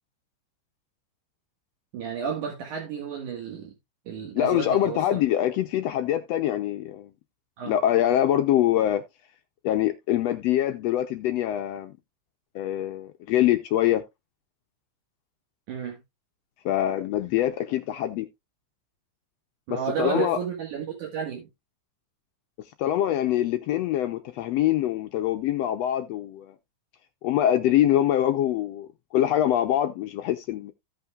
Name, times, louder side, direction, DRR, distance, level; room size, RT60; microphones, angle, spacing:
voice 1, 1.9-3.7 4.1-5.2 7.6-7.8 15.7-16.0 19.7-21.5, right 7 dB, 75° right, 3.2 m, -32 dB
voice 2, 4.3-7.1 7.6-9.0 9.6-11.9 12.5-14.0 16.6-18.3 20.0-20.4 22.8-26.5 27.2-30.7, left 12 dB, 75° left, 1.5 m, -24 dB
16.0 x 5.5 x 2.4 m
omnidirectional pair, 3.6 m